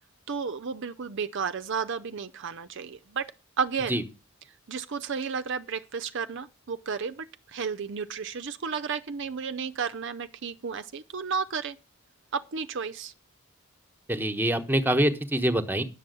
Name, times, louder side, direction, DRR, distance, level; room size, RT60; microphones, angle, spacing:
voice 1, 0.3-3.3 3.6-4.0 4.7-11.8 12.3-13.1, right 6 dB, 60° right, 0.6 m, -32 dB
voice 2, 14.1-15.8, right 1 dB, 10° right, 1.1 m, -25 dB
10.5 x 7.0 x 6.7 m
head